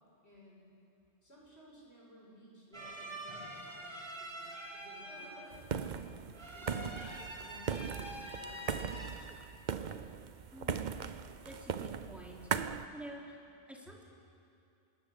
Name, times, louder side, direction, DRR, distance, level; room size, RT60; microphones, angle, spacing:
voice 1, 0.2-0.6 1.2-6.2 6.5-7.1 7.4-9.1 9.7-10.0, left 1 dB, 65° left, -4 dB, 6.3 m, -58 dB
sound 1, 2.7-9.1, right 1 dB, 25° right, 2.4 m, -46 dB
sound 2, 5.5-12.9, right 7 dB, 45° right, 0.7 m, -39 dB
voice 2, 10.5-10.9 11.4-12.4 12.9-13.4 13.7-14.0, equal, ahead, -2 dB, 3.3 m, -49 dB
27.0 x 20.0 x 7.1 m, 2.5 s
omnidirectional pair, 1.2 m